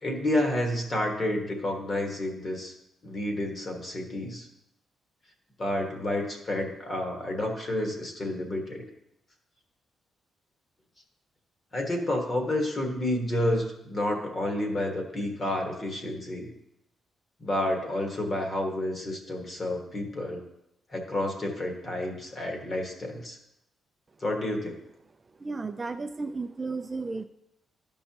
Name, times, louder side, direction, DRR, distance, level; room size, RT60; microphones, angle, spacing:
voice 1, 0.0-2.7 3.0-4.5 5.6-8.8 11.7-16.5 17.4-20.4 20.9-23.4 24.2-24.8, left 1 dB, 30° left, 2 dB, 1.4 m, -30 dB
voice 2, 25.4-27.2, right 3 dB, 25° right, 7 dB, 0.3 m, -33 dB
13.5 x 5.4 x 2.9 m, 0.82 s
cardioid pair, 150°, 0 cm